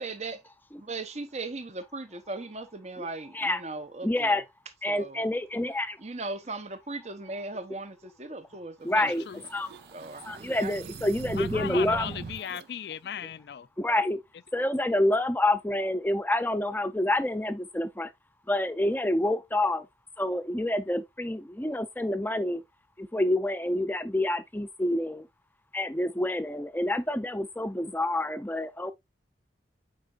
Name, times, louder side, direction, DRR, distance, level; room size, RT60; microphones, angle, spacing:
voice 1, 0.0-0.4 0.9-4.4 4.9-5.2 6.0-9.1 9.9-10.9, right 3 dB, 40° right, 1.0 m, -38 dB
voice 2, 4.0-4.4 4.8-6.0 8.8-9.8 10.2-12.1 13.2-13.3 13.8-14.2 14.5-18.1 18.5-19.9 20.2-22.6 23.0-25.3 25.7-28.9, left 1 dB, 10° left, 0.6 m, -28 dB
sound 1, 8.9-12.7, right 5 dB, 60° right, 0.4 m, -41 dB
voice 3, 9.0-9.4 11.4-13.7, left 8 dB, 65° left, 0.4 m, -37 dB
8.5 x 4.7 x 2.5 m
head